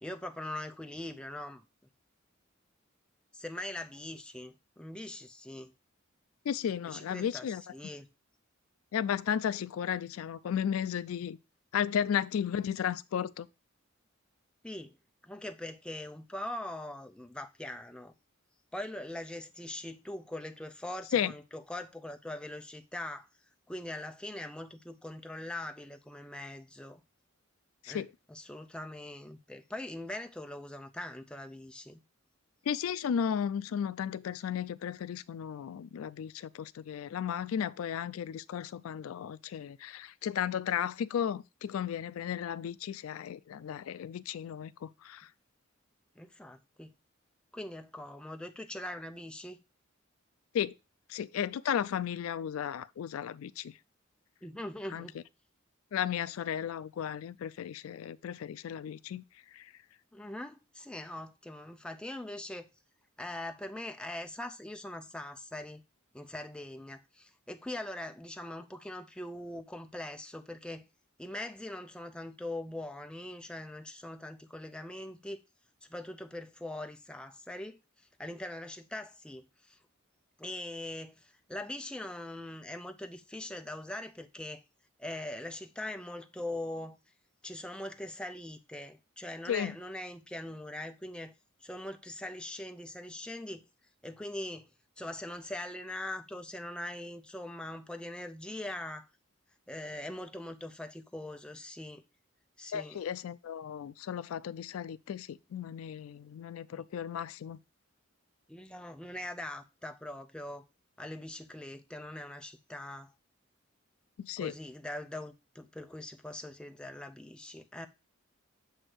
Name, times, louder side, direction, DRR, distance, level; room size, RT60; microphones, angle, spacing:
voice 1, 0.0-1.6 3.3-5.7 6.9-8.1 14.6-14.9 15.2-18.1 18.7-23.3 23.7-27.0 27.9-32.0 46.2-46.9 47.5-49.6 54.4-55.2 60.1-62.7 63.2-65.8 66.1-70.9 71.2-75.4 75.9-79.8 80.4-84.6 85.0-87.0 87.4-93.6 94.0-94.7 95.0-99.1 99.7-102.0 102.6-103.0 106.7-106.8 108.5-110.6 111.0-113.1 114.4-117.9, left 1 dB, 5° left, 0.4 m, -42 dB
voice 2, 6.5-7.6 8.9-11.4 11.7-13.5 21.1-21.3 27.8-28.1 32.7-45.3 50.5-50.7 51.1-53.7 54.9-55.1 55.9-59.2 59.5-59.7 89.5-89.7 102.7-107.6 114.2-114.5, left 8 dB, 85° left, 0.3 m, -34 dB
7.9 x 2.7 x 6.0 m
head